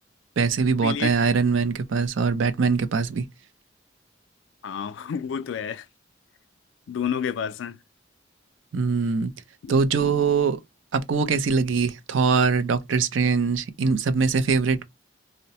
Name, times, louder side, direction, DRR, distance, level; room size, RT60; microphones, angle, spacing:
voice 1, 0.4-3.2 8.7-9.3 9.7-10.6 10.9-14.9, right 5 dB, 80° right, 0.5 m, -22 dB
voice 2, 4.6-5.8 6.9-7.8, left 7 dB, 75° left, 0.3 m, -29 dB
2.7 x 2.0 x 2.8 m
head